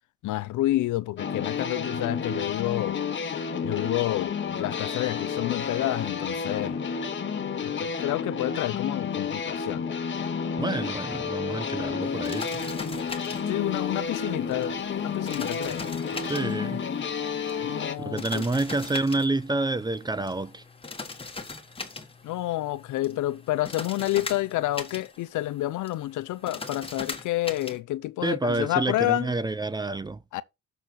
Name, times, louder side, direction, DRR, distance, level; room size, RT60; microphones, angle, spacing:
voice 1, 0.2-3.0 3.6-6.8 7.6-9.9 13.5-14.8 15.0-15.8 17.6-18.4 22.2-29.3 30.3-30.4, left 15 dB, 80° left, 0.6 m, -29 dB
sound 1, 1.2-18.0, left 6 dB, 40° left, 1.2 m, -31 dB
voice 2, 10.6-12.6 16.2-16.8 18.0-20.6 28.2-30.2, right 2 dB, 15° right, 0.4 m, -28 dB
sound 2, 12.0-27.8, left 3 dB, 20° left, 1.4 m, -41 dB
6.8 x 4.1 x 6.1 m
cardioid pair, 90°, 30 cm